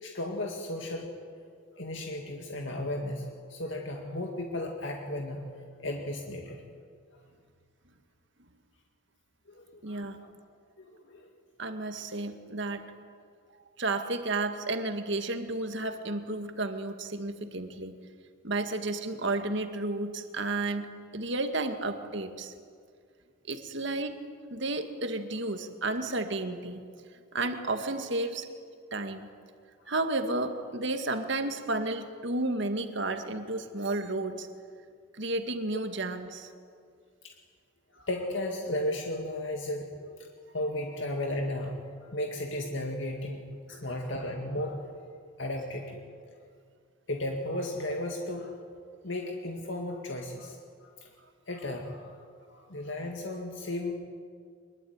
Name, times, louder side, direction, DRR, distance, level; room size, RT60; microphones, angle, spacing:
voice 1, 0.0-1.1 1.8-5.5 5.8-6.6 9.5-10.1 10.8-11.3 37.2-37.3 37.9-40.3 40.5-41.8 42.1-44.8 45.0-45.1 45.4-46.0 47.1-48.6 49.0-51.1 51.5-53.9, left 1 dB, 60° left, 2 dB, 2.3 m, -35 dB
voice 2, 9.8-10.2 11.6-12.8 13.8-18.0 18.4-20.9 21.1-22.5 23.5-24.2 24.5-26.9 27.3-28.5 28.9-29.3 29.9-34.5 35.1-36.5 43.7-43.8, right 2 dB, 60° right, 7 dB, 2.0 m, -32 dB
24.0 x 22.5 x 9.7 m, 2.1 s
head